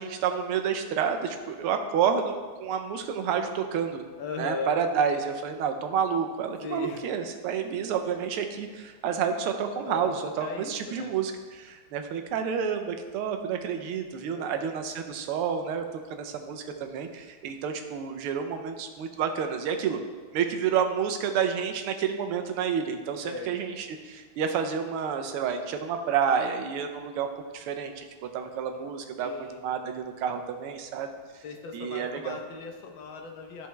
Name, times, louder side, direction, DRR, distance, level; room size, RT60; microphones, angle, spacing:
voice 1, 0.0-4.0 4.4-20.0 20.3-27.3 27.5-31.1 31.7-32.4, right 7 dB, 85° right, 6 dB, 1.6 m, -29 dB
voice 2, 4.2-4.8 6.6-7.0 9.9-10.1 10.4-11.1 14.3-14.7 23.2-23.5 29.2-29.6 31.4-33.7, left 4 dB, 70° left, 3 dB, 1.4 m, -37 dB
13.0 x 4.5 x 3.1 m, 1.4 s
omnidirectional pair, 2.4 m